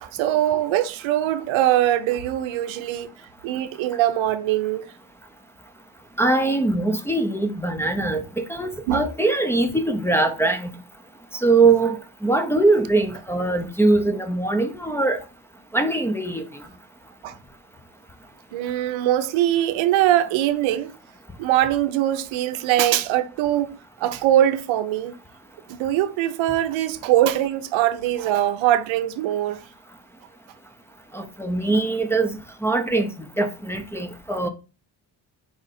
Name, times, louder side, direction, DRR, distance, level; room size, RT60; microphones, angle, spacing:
voice 1, 0.0-3.1 3.4-4.9 8.9-9.1 17.2-17.4 18.5-20.9 21.4-23.7 24.0-25.2 25.7-29.6, right 12 dB, 80° right, 0.6 m, -22 dB
voice 2, 6.2-10.8 11.4-12.0 12.2-15.2 15.7-16.4 31.1-34.5, right 3 dB, 5° left, 0.5 m, -22 dB
4.9 x 2.5 x 4.1 m
cardioid pair, 90°, 46 cm